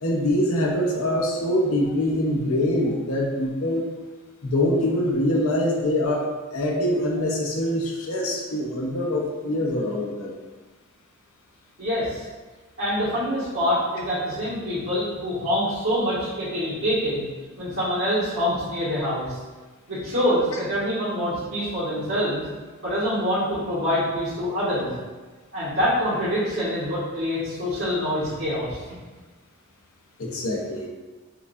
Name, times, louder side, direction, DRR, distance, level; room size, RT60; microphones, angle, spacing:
voice 1, 0.0-3.8 4.4-10.3 30.2-30.9, left 1 dB, 80° left, -1 dB, 0.7 m, -24 dB
voice 2, 11.8-12.2 12.8-17.2 17.6-19.4 19.9-22.4 22.8-24.9 25.5-29.0, equal, 75° right, -10 dB, 1.3 m, -25 dB
4.6 x 2.4 x 2.6 m, 1.3 s
head